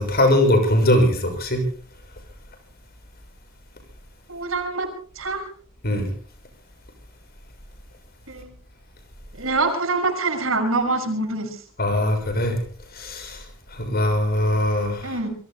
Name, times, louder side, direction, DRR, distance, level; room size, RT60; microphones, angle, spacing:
voice 1, 0.0-1.6 5.8-6.1 11.8-12.6 12.9-13.4 13.7-15.2, left 1 dB, 50° left, 5 dB, 6.8 m, -21 dB
voice 2, 4.3-4.9 5.1-5.5 8.3-8.5 9.3-11.6 15.0-15.3, right 3 dB, 85° right, 6 dB, 6.1 m, -25 dB
28.0 x 23.0 x 2.2 m, 0.43 s
head